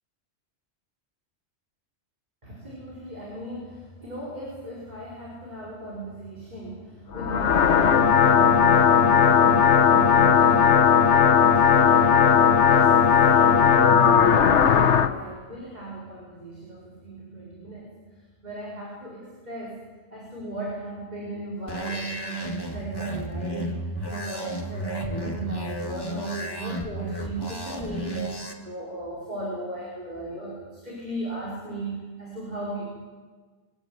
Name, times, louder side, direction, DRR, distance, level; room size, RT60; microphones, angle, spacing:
voice 1, 2.4-17.9 18.4-19.8 20.1-32.9, right 2 dB, 40° right, -5 dB, 5.0 m, -36 dB
sound 1, 7.1-15.1, left 7 dB, 80° left, 1.3 m, -17 dB
sound 2, 21.7-28.5, equal, 20° left, 1.9 m, -33 dB
23.0 x 16.0 x 9.1 m, 1.5 s
omnidirectional pair, 1.2 m